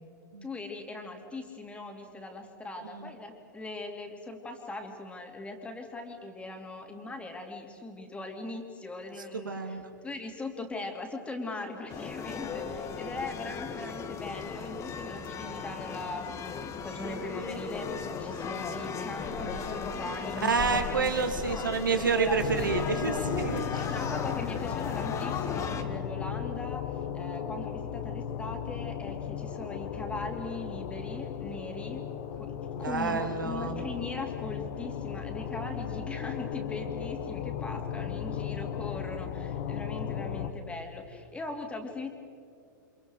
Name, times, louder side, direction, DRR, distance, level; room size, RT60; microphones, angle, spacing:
voice 1, 0.4-20.5 21.4-21.5 22.0-22.7 23.0-23.3 23.7-42.1, left 2 dB, 10° left, 3 dB, 3.1 m, -40 dB
voice 2, 9.3-9.8 20.4-23.9 32.8-33.8, right 5 dB, 80° right, 6 dB, 2.5 m, -29 dB
sound 1, 11.9-25.8, left 5 dB, 30° left, 1.9 m, -36 dB
sound 2, 22.4-40.5, left 8 dB, 50° left, 1.6 m, -36 dB
29.5 x 26.5 x 4.9 m, 2.4 s
figure-of-eight pair, 100°, 11 cm